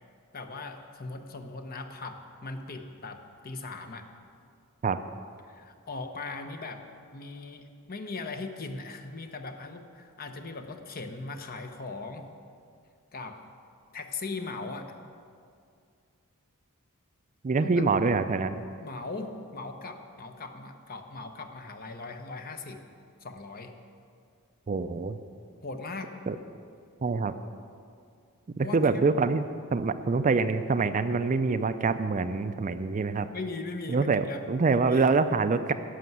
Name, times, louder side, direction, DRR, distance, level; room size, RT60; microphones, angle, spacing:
voice 1, 0.3-4.1 5.4-12.3 13.1-13.4 13.9-14.9 17.6-17.8 18.8-22.8 23.2-23.7 25.6-26.1 28.6-29.1 33.3-34.4 34.7-35.1, left 3 dB, 45° left, 6 dB, 0.9 m, -39 dB
voice 2, 17.4-18.6 24.7-25.2 26.3-26.4 27.0-27.3 28.6-29.4 29.7-33.3 33.9-35.7, right 4 dB, 35° right, 11 dB, 0.4 m, -25 dB
11.5 x 6.7 x 9.3 m, 2.3 s
head